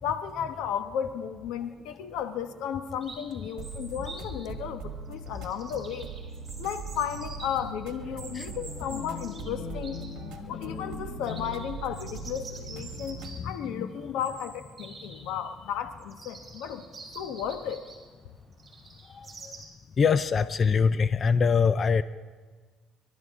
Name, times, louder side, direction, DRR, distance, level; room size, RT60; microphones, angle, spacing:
voice 1, 0.0-6.1 6.6-10.0 10.5-16.9 17.1-17.9, left 8 dB, 85° left, 9 dB, 1.1 m, -34 dB
Chirp tweet, 3.0-19.6, right 3 dB, 25° right, 4.8 m, -48 dB
sound 1, 3.6-13.4, right 5 dB, 80° right, 1.3 m, -41 dB
sound 2, 8.2-14.6, left 8 dB, 60° left, 1.1 m, -43 dB
voice 2, 13.4-13.9 19.1-19.5 20.0-22.0, left 5 dB, 40° left, 13 dB, 0.4 m, -24 dB
28.0 x 12.5 x 3.7 m, 1.5 s
cardioid pair, 105°, 0 cm